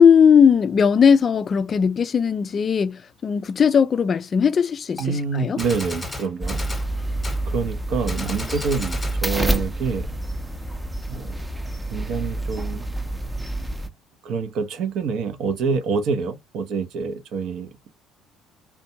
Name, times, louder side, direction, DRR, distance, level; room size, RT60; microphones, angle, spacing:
voice 1, 0.0-5.6, left 7 dB, 40° left, 0.3 m, -18 dB
Gunshot gunfire, 5.0-5.1 5.6-6.9 7.2-7.4 8.1-9.2, left 2 dB, 15° left, 0.9 m, -33 dB
voice 2, 5.0-6.6 7.5-10.2 11.1-11.4 11.9-12.8 14.2-17.9, right 5 dB, 60° right, 0.5 m, -26 dB
sound 1, 6.4-13.9, right 1 dB, 10° right, 0.5 m, -28 dB
2.5 x 2.2 x 2.6 m
hypercardioid pair, 55°, 0 cm